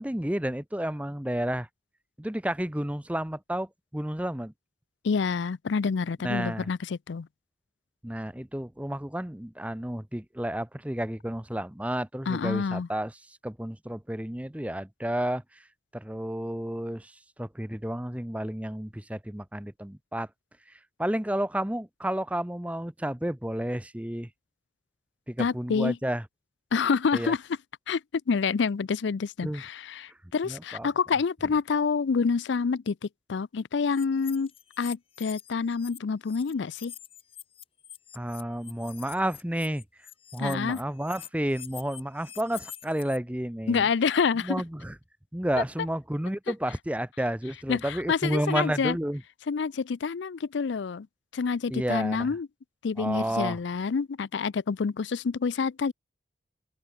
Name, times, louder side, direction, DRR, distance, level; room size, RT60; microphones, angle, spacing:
voice 1, 0.0-1.7 2.2-4.5 6.2-6.7 8.0-13.1 13.4-15.4 15.9-17.1 17.4-20.3 21.0-24.3 25.3-26.2 27.1-27.3 29.4-29.6 30.5-30.9 38.1-39.8 40.3-43.9 44.4-44.9 45.3-49.2 51.7-52.3 53.0-53.6, right 1 dB, 5° right, 0.7 m, -31 dB
voice 2, 5.0-7.3 12.3-12.9 25.4-26.0 26.7-27.4 27.9-28.0 28.3-33.0 33.3-34.5 34.8-36.9 40.4-40.8 43.7-44.6 47.7-49.0 49.5-51.1 51.3-52.5 52.8-55.9, left 5 dB, 75° left, 0.5 m, -27 dB
sound 1, 33.9-36.0 36.2-43.2, left 10 dB, 30° left, 7.2 m, -46 dB
open air
head